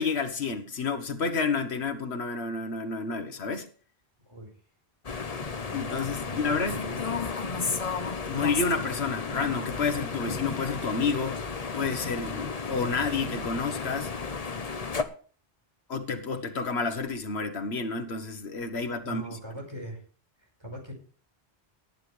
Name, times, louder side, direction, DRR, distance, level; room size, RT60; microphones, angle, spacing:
voice 1, 0.0-3.7 5.7-6.8 8.2-11.5 11.7-14.1 15.9-19.4, left 4 dB, 85° left, 1.5 m, -30 dB
sound 1, 5.0-15.0, left 4 dB, 40° left, 1.0 m, -33 dB
voice 2, 6.4-7.7 19.0-20.0 20.4-20.9, equal, 25° right, 5.2 m, -41 dB
18.5 x 10.0 x 3.3 m
omnidirectional pair, 1.1 m